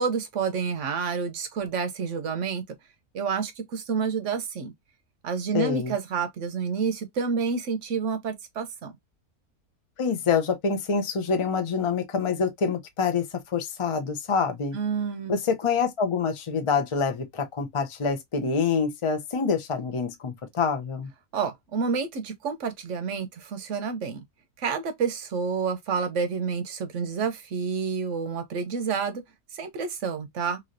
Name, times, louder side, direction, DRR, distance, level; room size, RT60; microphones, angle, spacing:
voice 1, 0.0-2.6 3.1-4.7 5.2-8.9 14.7-15.3 21.3-24.2 24.6-29.2 29.5-30.6, right 5 dB, 60° right, 1.0 m, -29 dB
voice 2, 5.5-5.9 10.0-14.8 15.3-21.1, left 5 dB, 50° left, 0.3 m, -26 dB
3.1 x 2.7 x 2.5 m
omnidirectional pair, 1.6 m